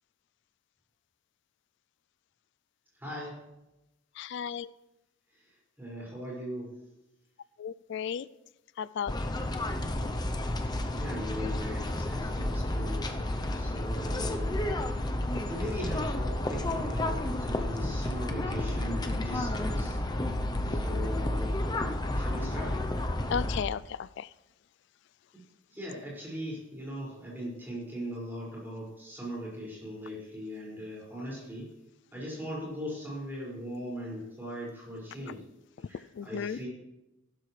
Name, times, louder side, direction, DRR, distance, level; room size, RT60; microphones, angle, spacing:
voice 1, 3.0-3.4 5.3-6.7 10.9-13.0 13.6-14.6 15.5-20.0 20.7-21.5 22.1-22.8 25.7-31.7 32.1-35.4 35.8-36.7, equal, 10° right, -5 dB, 5.6 m, -39 dB
voice 2, 4.2-4.7 7.6-8.3 8.8-9.1 20.7-21.1 23.3-24.3 36.1-36.6, left 7 dB, 55° left, 18 dB, 0.3 m, -34 dB
sound 1, 9.1-23.6, left 1 dB, 20° left, 0.7 m, -31 dB
15.5 x 12.5 x 3.3 m, 0.95 s
head